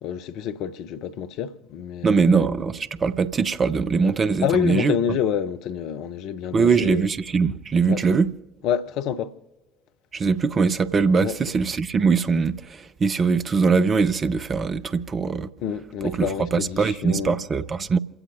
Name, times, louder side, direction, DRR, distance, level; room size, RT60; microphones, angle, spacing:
voice 1, 0.0-2.4 4.4-7.1 7.9-8.0 8.6-9.4 11.2-11.4 15.6-17.4, left 8 dB, 55° left, 0.6 m, -27 dB
voice 2, 2.0-5.0 6.5-8.3 10.1-15.5 16.0-18.0, right 5 dB, 35° right, 0.8 m, -22 dB
28.5 x 16.5 x 2.6 m
figure-of-eight pair, 55°, 0 cm